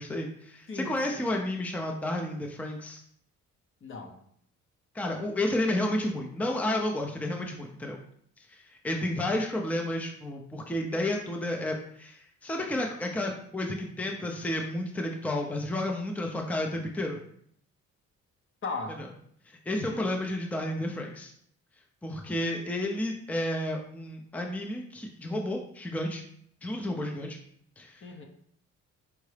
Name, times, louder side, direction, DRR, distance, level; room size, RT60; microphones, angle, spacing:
voice 1, 0.0-3.0 4.9-8.0 8.5-17.2 19.0-19.1 19.5-21.3 22.0-26.2 26.6-27.4 27.8-28.0, left 1 dB, 5° left, 1 dB, 0.5 m, -31 dB
voice 2, 0.7-1.4 3.8-4.2 18.6-19.0 19.7-20.1 28.0-28.2, left 3 dB, 40° left, 3 dB, 0.7 m, -38 dB
4.7 x 2.6 x 3.2 m, 0.66 s
cardioid pair, 90°, 30 cm